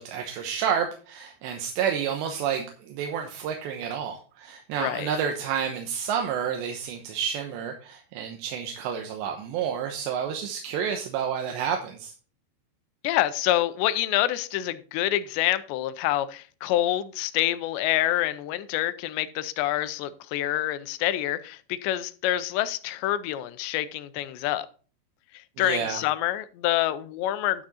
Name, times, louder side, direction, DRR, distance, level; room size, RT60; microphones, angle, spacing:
voice 1, 0.0-12.1 25.6-26.0, right 7 dB, 85° right, 3.2 m, -30 dB
voice 2, 13.0-24.7 25.6-27.7, left 14 dB, 85° left, 2.9 m, -27 dB
11.5 x 6.2 x 4.1 m
omnidirectional pair, 4.9 m